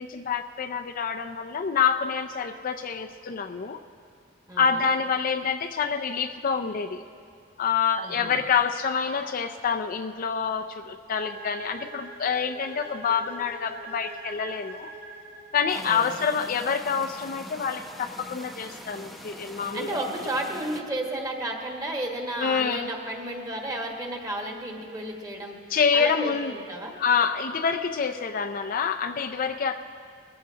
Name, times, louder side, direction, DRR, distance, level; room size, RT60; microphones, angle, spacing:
voice 1, 0.0-3.8 4.6-7.0 7.6-14.9 15.5-19.9 22.4-22.9 25.7-26.5 27.0-29.8, left 6 dB, 45° left, 6 dB, 0.4 m, -27 dB
voice 2, 4.5-4.9 8.0-8.4 15.7-16.1 19.7-25.5 25.9-26.9, right 1 dB, 20° right, 0 dB, 1.6 m, -33 dB
sound 1, 11.1-16.0, right 2 dB, 55° right, 3.5 m, -43 dB
sound 2, 15.7-20.8, equal, ahead, 0.8 m, -43 dB
21.0 x 15.0 x 2.8 m, 2.2 s
head